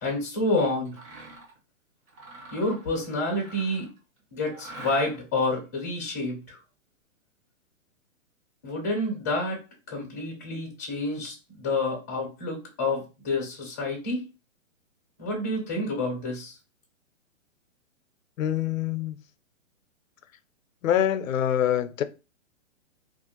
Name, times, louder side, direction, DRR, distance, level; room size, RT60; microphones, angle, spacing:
voice 1, 0.0-1.0 2.5-3.9 4.3-6.6 8.6-9.6 9.9-14.2 15.2-16.5, left 2 dB, 15° left, 0.3 m, -29 dB
Mechanisms, 0.8-1.6 2.1-4.0 4.5-5.4, right 2 dB, 25° right, 0.7 m, -45 dB
voice 2, 18.4-19.2 20.8-22.0, left 10 dB, 75° left, 0.5 m, -25 dB
2.4 x 2.1 x 2.9 m
hypercardioid pair, 135°, 40 cm